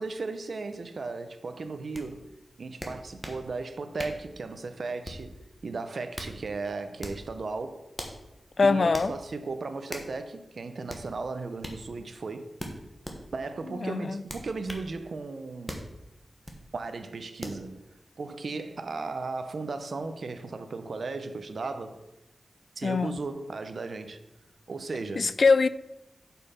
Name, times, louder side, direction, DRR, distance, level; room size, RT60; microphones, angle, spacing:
voice 1, 0.0-2.3 2.6-7.8 8.6-12.5 13.3-15.8 16.7-17.8 18.2-22.0 22.8-24.2 24.7-25.3, right 3 dB, 60° right, 0.7 m, -36 dB
sound 1, 1.9-2.1 2.8-3.4 4.0-4.3 5.0-5.3 5.9-6.4 7.0-7.3 8.0-8.2 8.9-9.1 9.9-10.1 10.9-11.1 11.6-11.8 12.6-13.2 14.3-14.9 15.7-15.9 16.4-16.6 17.4-17.6, equal, 10° left, 1.3 m, -39 dB
voice 2, 8.6-9.1 13.8-14.2 22.8-23.2 25.2-25.7, left 4 dB, 50° left, 0.4 m, -23 dB
8.1 x 5.6 x 5.7 m
wide cardioid pair, 125°, 0 cm